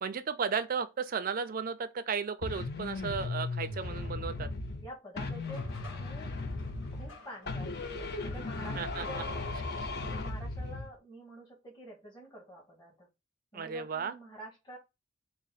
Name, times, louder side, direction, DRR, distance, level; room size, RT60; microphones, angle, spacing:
voice 1, 0.0-4.5 8.8-9.0 13.5-14.1, right 6 dB, 40° right, 0.4 m, -34 dB
sound 1, 2.4-4.9 5.2-7.2 7.5-10.9, left 3 dB, 50° left, 0.5 m, -37 dB
voice 2, 4.8-6.3 6.9-9.5 9.8-13.1 13.5-14.8, equal, 20° left, 1.3 m, -48 dB
sound 2, 5.4-9.3, left 2 dB, 70° left, 1.2 m, -54 dB
3.8 x 2.0 x 4.0 m
head